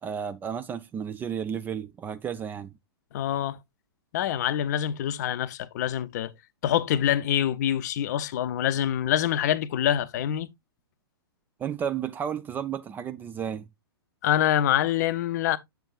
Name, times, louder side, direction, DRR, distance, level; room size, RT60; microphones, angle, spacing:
voice 1, 0.0-2.7 11.6-13.7, right 8 dB, 15° right, 0.4 m, -32 dB
voice 2, 3.1-3.6 4.1-6.3 6.6-10.5 14.2-15.6, left 11 dB, 45° left, 0.6 m, -25 dB
7.7 x 6.9 x 2.4 m
figure-of-eight pair, 110°, 13 cm